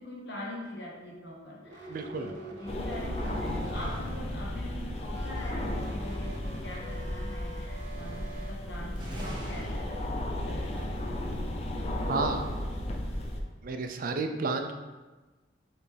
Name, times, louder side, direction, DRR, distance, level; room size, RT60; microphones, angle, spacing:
voice 1, 0.0-11.2, left 1 dB, 60° left, -3 dB, 1.1 m, -43 dB
sound 1, 1.6-3.8 5.1-8.5, right 2 dB, 70° right, 0.7 m, -46 dB
voice 2, 1.9-2.3 12.1-12.4 13.6-14.7, right 3 dB, 50° right, 5 dB, 0.4 m, -31 dB
sound 2, 2.7-13.4, left 1 dB, 35° left, 0.5 m, -34 dB
sound 3, 3.2-4.9 5.2-5.3 5.5-6.5 7.6-7.7 9.0-9.8, equal, 25° right, 0.9 m, -44 dB
5.1 x 3.3 x 3.2 m, 1.2 s
head